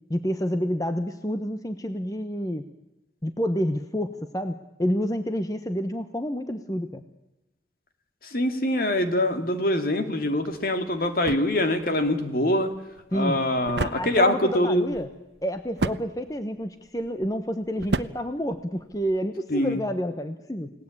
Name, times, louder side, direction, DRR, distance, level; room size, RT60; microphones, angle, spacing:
voice 1, 0.1-2.6 3.2-7.0 13.1-13.4 13.8-15.1 15.4-20.7, equal, 20° left, 8 dB, 1.0 m, -29 dB
voice 2, 8.3-12.7 13.1-14.9 19.5-19.8, left 1 dB, 55° left, 7 dB, 2.4 m, -24 dB
sound 1, 10.4-19.2, right 2 dB, 75° right, 0.9 m, -35 dB
29.0 x 18.0 x 8.5 m, 0.95 s
head